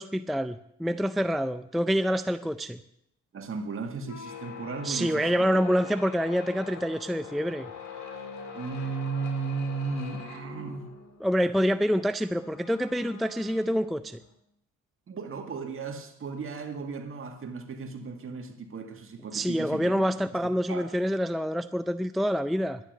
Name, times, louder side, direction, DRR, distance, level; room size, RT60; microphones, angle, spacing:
voice 1, 0.0-2.8 4.8-7.7 11.2-14.2 19.3-22.8, equal, ahead, 0.4 m, -27 dB
voice 2, 3.3-5.6 8.5-10.9 15.1-20.1 20.7-20.9, right 4 dB, 45° right, 2.0 m, -35 dB
sound 1, 4.0-14.3, left 5 dB, 65° left, 2.4 m, -44 dB
11.5 x 10.5 x 6.6 m
cardioid pair, 90°, 30 cm